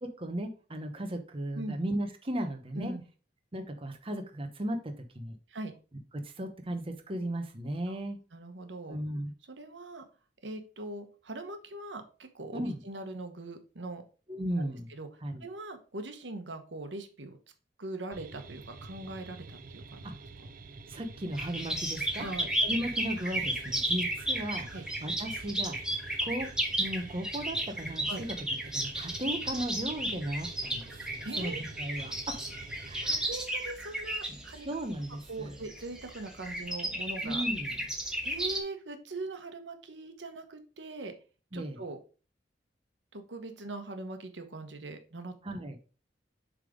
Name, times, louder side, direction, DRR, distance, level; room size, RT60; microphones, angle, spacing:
voice 1, 0.0-2.9 3.5-5.4 6.1-8.2 8.9-9.3 12.5-12.8 14.3-14.9 15.2-15.4 20.0-20.1 20.9-22.3 22.6-24.7 25.0-25.8 26.2-26.5 26.8-28.3 28.7-32.4 32.8-33.3 34.3-35.6 37.2-37.8 41.5-41.8 45.4-45.8, right 1 dB, 30° right, 5 dB, 1.0 m, -36 dB
voice 2, 8.3-9.0 9.5-10.0 10.4-14.0 14.6-15.1 15.4-17.4 17.8-20.1 22.2-22.5 23.9-24.0 24.7-24.8 28.1-28.3 31.2-31.6 33.0-34.7 35.3-37.4 38.2-41.1 41.5-42.0 43.1-45.3, right 2 dB, 80° right, 7 dB, 1.1 m, -41 dB
sound 1, 18.1-33.3, right 3 dB, 50° right, 0.6 m, -48 dB
sound 2, 21.3-38.6, right 1 dB, 5° right, 1.4 m, -34 dB
7.4 x 3.5 x 5.1 m, 0.36 s
head